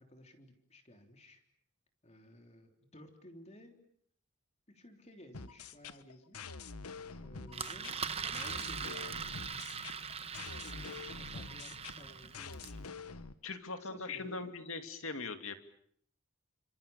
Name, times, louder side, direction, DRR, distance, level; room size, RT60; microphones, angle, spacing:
voice 1, 0.0-1.4 2.0-3.8 4.7-6.6 7.2-9.3 10.2-13.1 13.8-14.5, equal, 30° left, 5 dB, 3.5 m, -56 dB
sound 1, 5.3-13.3, left 4 dB, 85° left, 1.2 m, -46 dB
Engine, 7.5-12.8, right 6 dB, 25° right, 1.1 m, -41 dB
voice 2, 13.4-15.5, left 4 dB, 65° left, 8 dB, 2.6 m, -40 dB
29.5 x 26.0 x 7.1 m, 0.65 s
head